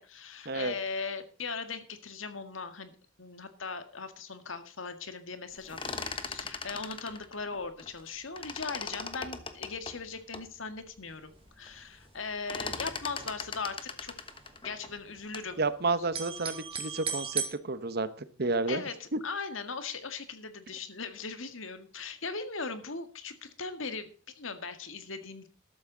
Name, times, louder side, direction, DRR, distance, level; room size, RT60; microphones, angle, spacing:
voice 1, 0.0-2.9 3.2-5.8 6.2-14.1 14.6-15.6 18.7-25.5, left 4 dB, 90° left, 9 dB, 1.8 m, -39 dB
sound 1, 5.5-8.1 8.4-10.5 11.0-11.1 11.4-11.8 12.0-15.6, left 4 dB, 25° left, 1.2 m, -39 dB
sound 2, 11.1-11.5 11.8-11.9 12.0-13.7 14.0-15.7 16.0-17.5, right 6 dB, 30° right, 2.4 m, -37 dB
voice 2, 15.6-18.1 18.4-18.8, right 3 dB, 55° right, 13 dB, 1.1 m, -30 dB
13.5 x 12.0 x 4.0 m, 0.39 s
head